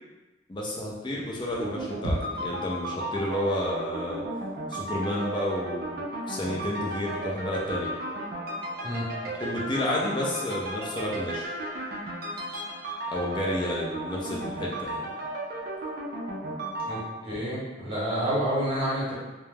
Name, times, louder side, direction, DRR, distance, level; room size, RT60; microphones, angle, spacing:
voice 1, 0.5-4.2 4.7-7.9 9.4-11.5 13.1-15.1, left 1 dB, 25° left, -3 dB, 0.4 m, -31 dB
sound 1, 1.5-17.0, right 1 dB, 50° right, 0.4 m, -34 dB
voice 2, 16.9-19.1, equal, 30° right, -8 dB, 0.8 m, -29 dB
2.3 x 2.1 x 3.2 m, 1.2 s
head